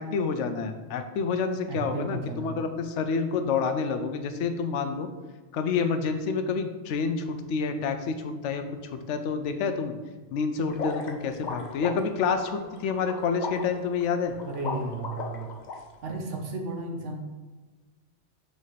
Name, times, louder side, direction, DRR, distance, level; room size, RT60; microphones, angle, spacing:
voice 1, 0.0-5.1 5.5-8.6 9.1-9.9 10.3-14.3, left 5 dB, 80° left, 8 dB, 0.9 m, -28 dB
voice 2, 1.7-2.6 14.4-15.5 16.0-17.3, right 2 dB, 80° right, 2 dB, 1.3 m, -34 dB
sound 1, 10.7-15.7, left 4 dB, 45° left, 0.7 m, -36 dB
5.2 x 4.8 x 4.1 m, 1.3 s
omnidirectional pair, 1.2 m